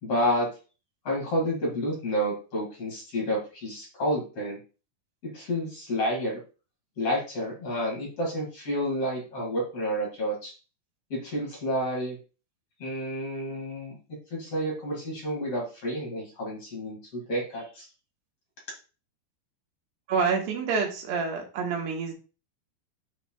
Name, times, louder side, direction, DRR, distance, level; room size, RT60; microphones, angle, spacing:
voice 1, 0.0-0.5 1.0-4.6 5.2-6.4 7.0-10.5 11.1-12.2 12.8-14.0 14.3-17.9, equal, 40° left, -2 dB, 2.8 m, -30 dB
voice 2, 20.1-22.1, right 5 dB, 80° right, 0 dB, 3.6 m, -27 dB
9.8 x 5.0 x 2.4 m, 0.34 s
omnidirectional pair, 4.7 m